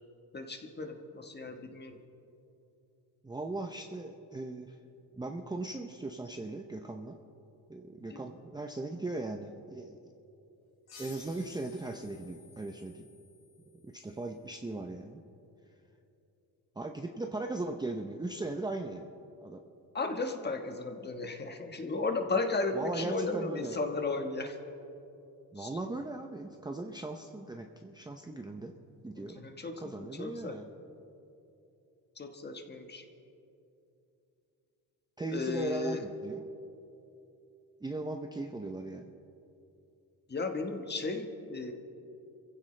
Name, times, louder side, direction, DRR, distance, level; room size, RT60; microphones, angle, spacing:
voice 1, 0.3-2.0 8.1-8.2 19.9-24.6 25.6-25.7 29.2-30.6 32.2-33.0 35.3-36.0 40.3-41.7, left 3 dB, 25° left, 5 dB, 1.4 m, -35 dB
voice 2, 3.2-4.8 5.2-7.2 7.7-10.0 11.0-13.1 13.8-15.2 16.8-19.1 19.4-19.6 22.7-23.8 25.5-28.7 29.0-29.4 29.8-30.7 35.2-36.4 37.8-39.0, right 2 dB, 10° right, 3 dB, 0.6 m, -38 dB
sound 1, 10.9-14.1, left 5 dB, 65° left, 4.3 m, -55 dB
27.5 x 15.5 x 3.3 m, 2.8 s
cardioid pair, 125°, 40 cm